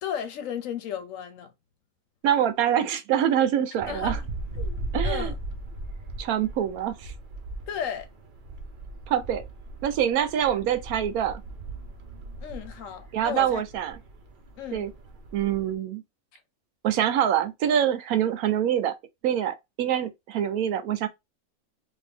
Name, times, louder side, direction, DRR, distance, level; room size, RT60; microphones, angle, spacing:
voice 1, 0.0-1.5 3.9-4.2 4.6-4.8 5.0-5.4 7.7-8.1 12.4-13.6 14.6-14.9 16.3-16.4, left 8 dB, 70° left, 1.0 m, -34 dB
voice 2, 2.2-4.2 4.9-5.3 6.2-7.1 9.1-9.4 9.8-11.4 13.1-14.0 14.7-14.9 15.3-16.0 16.8-18.9 19.2-21.1, right 10 dB, 85° right, 1.1 m, -25 dB
sound 1, 3.8-15.7, right 2 dB, 55° right, 0.6 m, -37 dB
2.7 x 2.6 x 3.3 m
omnidirectional pair, 1.5 m